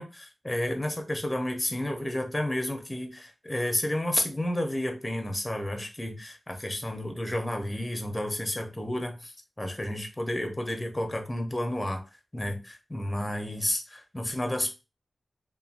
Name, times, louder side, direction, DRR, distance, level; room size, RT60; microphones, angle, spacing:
voice 1, 0.0-12.0 12.3-14.7, left 1 dB, 20° left, 0.7 m, -31 dB
2.9 x 2.1 x 2.5 m
cardioid pair, 55°, 0 cm